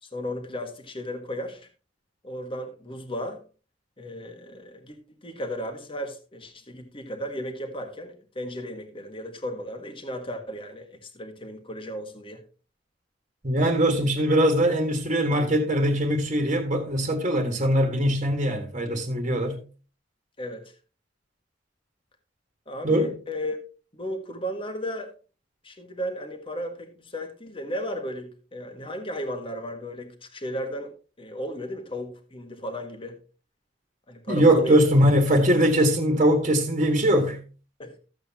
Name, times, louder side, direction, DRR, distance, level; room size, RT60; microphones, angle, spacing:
voice 1, 0.0-1.7 2.2-3.4 4.0-5.0 5.2-12.4 20.4-20.7 22.7-23.6 23.9-25.1 25.6-30.9 31.2-33.2 34.1-34.8 35.3-35.4 37.8-38.0, equal, 30° left, 1.6 m, -35 dB
voice 2, 13.4-19.6 22.8-23.1 34.3-37.4, equal, 40° right, 1.7 m, -21 dB
14.0 x 7.8 x 2.9 m
head